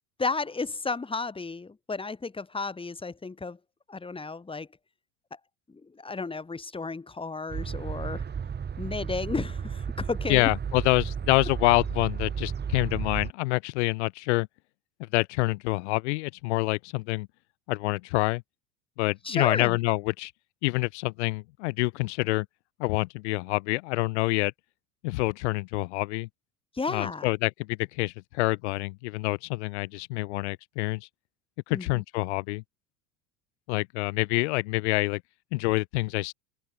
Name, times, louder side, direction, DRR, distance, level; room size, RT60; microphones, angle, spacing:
voice 1, 0.2-3.6 3.9-4.7 5.7-8.2 8.8-10.5 19.2-19.8 26.7-27.3 31.7-32.0, left 4 dB, 10° left, 3.1 m, -33 dB
sound 1, 7.5-13.3, right 7 dB, 25° right, 4.3 m, -33 dB
voice 2, 10.3-14.5 15.1-17.3 17.7-18.4 19.0-20.3 20.6-22.4 22.8-24.5 25.0-26.3 26.9-31.1 31.7-32.6 33.7-35.2 35.5-36.3, left 23 dB, 55° left, 1.2 m, -27 dB
open air
figure-of-eight pair, 75°, 43 cm